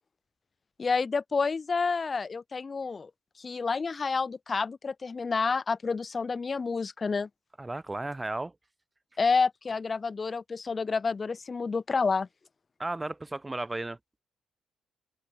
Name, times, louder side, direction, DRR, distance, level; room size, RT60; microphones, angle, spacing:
voice 1, 0.8-3.1 3.4-7.3 9.2-12.3, left 4 dB, 35° left, 0.7 m, -29 dB
voice 2, 7.6-8.5 12.8-14.0, right 2 dB, 15° right, 0.4 m, -34 dB
open air
cardioid pair, 90°, 0 cm